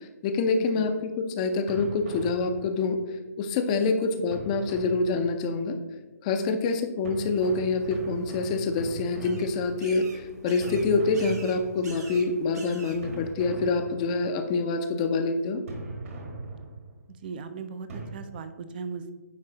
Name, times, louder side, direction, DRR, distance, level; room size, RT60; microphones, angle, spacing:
voice 1, 0.0-3.0 3.4-5.8 6.2-15.6, left 3 dB, 25° left, 7 dB, 0.6 m, -26 dB
sound 1, 1.7-3.1 4.3-5.6 7.0-10.1 10.6-12.1 13.0-14.4 15.7-17.1 17.9-18.1, right 2 dB, 55° right, 1.5 m, -40 dB
sound 2, 7.1-13.3, right 3 dB, 70° right, 1.6 m, -47 dB
voice 2, 17.2-19.1, right 5 dB, 35° right, 10 dB, 0.5 m, -37 dB
9.3 x 3.2 x 3.9 m, 1.1 s
hypercardioid pair, 155°, 9 cm